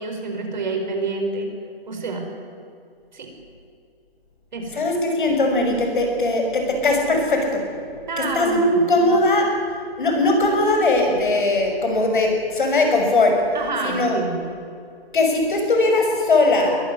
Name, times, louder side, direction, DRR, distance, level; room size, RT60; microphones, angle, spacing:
voice 1, 0.0-1.5 1.9-2.3 3.1-3.3 4.5-4.8 8.1-8.8 13.5-14.4, right 3 dB, 50° right, 3 dB, 5.0 m, -28 dB
voice 2, 4.7-7.6 8.2-9.5 10.0-13.4 13.8-14.2 15.1-16.8, left 2 dB, 55° left, 3 dB, 6.2 m, -19 dB
22.5 x 15.5 x 9.8 m, 2.5 s
hypercardioid pair, 175°, 30 cm